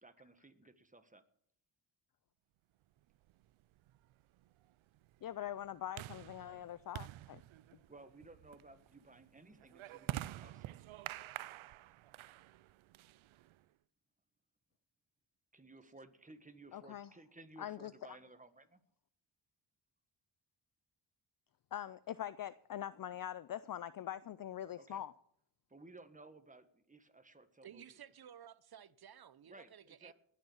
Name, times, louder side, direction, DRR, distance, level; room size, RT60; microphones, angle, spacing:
voice 1, 0.0-1.2 7.9-10.7 15.5-18.8 24.8-25.0 25.7-28.0 29.5-30.1, right 2 dB, 15° right, 1.5 m, -58 dB
sound 1, 3.3-13.6, right 15 dB, 85° right, 0.6 m, -48 dB
voice 2, 5.2-7.4 16.7-17.1 17.6-17.9 21.7-25.1, left 11 dB, 45° left, 0.5 m, -43 dB
voice 3, 27.6-30.1, right 9 dB, 50° right, 0.9 m, -55 dB
20.0 x 6.7 x 7.2 m
cardioid pair, 75°, 47 cm